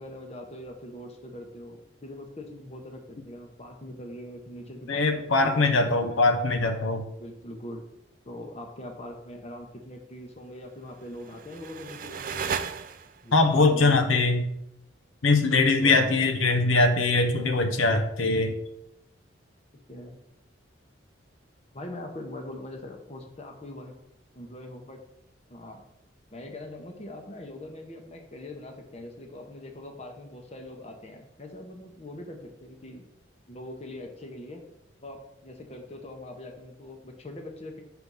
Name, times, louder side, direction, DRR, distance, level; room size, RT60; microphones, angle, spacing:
voice 1, 0.0-6.3 7.2-7.8 8.2-12.6 13.2-14.0 15.8-16.0 17.3-17.6 19.9-20.2 21.7-23.9 24.4-25.0 25.5-25.8 26.3-33.1 33.5-34.6 35.0-37.8, left 1 dB, 30° left, 3 dB, 0.8 m, -42 dB
voice 2, 4.9-7.0 13.3-14.5 15.2-18.6, left 3 dB, 85° left, 6 dB, 0.7 m, -22 dB
sound 1, 11.0-13.4, right 6 dB, 45° right, 0.4 m, -35 dB
6.1 x 3.4 x 5.4 m, 0.80 s
head